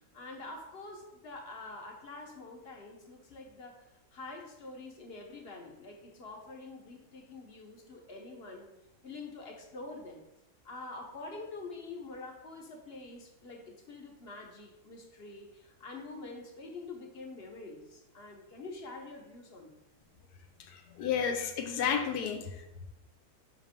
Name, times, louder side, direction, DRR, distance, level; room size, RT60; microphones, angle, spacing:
voice 1, 0.1-8.7 9.0-10.3 10.6-19.7, left 3 dB, 45° left, 1 dB, 1.1 m, -46 dB
voice 2, 20.7-22.6, left 7 dB, 85° left, 6 dB, 1.3 m, -32 dB
5.9 x 3.2 x 5.1 m, 0.90 s
omnidirectional pair, 1.7 m